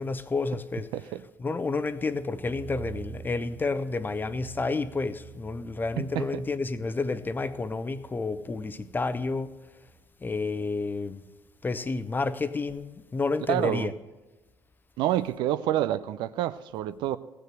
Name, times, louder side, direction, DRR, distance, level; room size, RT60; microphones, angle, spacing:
voice 1, 0.0-0.9 1.4-9.5 10.2-11.2 11.6-13.9, left 3 dB, 20° left, 0.7 m, -30 dB
sound 1, 2.0-12.7 13.0-13.1, right 7 dB, ahead, 1.5 m, -49 dB
voice 2, 6.0-6.4 13.5-13.9 15.0-17.2, right 13 dB, 55° right, 0.4 m, -28 dB
16.5 x 6.6 x 7.7 m
figure-of-eight pair, 55°, 9 cm